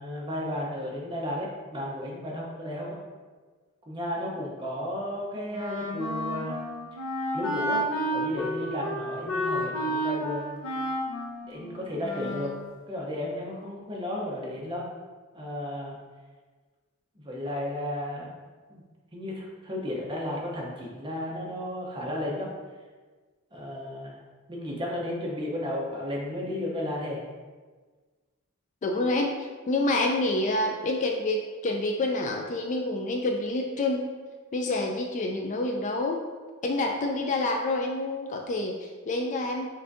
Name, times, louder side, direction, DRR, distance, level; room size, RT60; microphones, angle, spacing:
voice 1, 0.0-3.0 3.9-6.6 7.3-7.8 8.1-10.6 11.4-12.5 12.9-14.9 15.3-16.0 17.2-18.3 18.7-18.8 19.1-22.5 23.5-24.2 24.5-27.2, left 1 dB, 25° right, -3 dB, 0.7 m, -33 dB
Wind instrument woodwind instrument, 5.5-12.6, equal, 90° left, 0.8 m, -31 dB
voice 2, 28.8-34.0 34.5-36.2 36.6-39.7, left 2 dB, 35° left, 2 dB, 0.3 m, -28 dB
5.5 x 2.6 x 2.6 m, 1.4 s
head